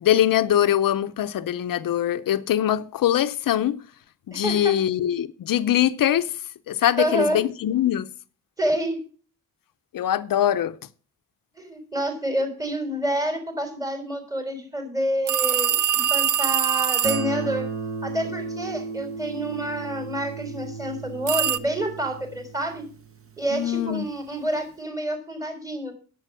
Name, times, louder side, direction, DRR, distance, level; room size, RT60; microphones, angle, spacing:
voice 1, 0.0-3.8 4.3-6.3 6.7-8.1 9.9-10.8 23.5-24.1, left 11 dB, 90° left, 0.6 m, -22 dB
voice 2, 4.3-4.7 7.0-7.4 8.6-9.0 11.6-17.7 18.0-22.8 23.4-25.9, right 1 dB, 10° right, 3.8 m, -28 dB
sound 1, 15.3-17.4 21.3-21.6, right 10 dB, 65° right, 0.6 m, -23 dB
Guitar, 17.0-23.8, right 4 dB, 40° right, 1.5 m, -34 dB
11.0 x 7.1 x 6.1 m
wide cardioid pair, 160°, 33 cm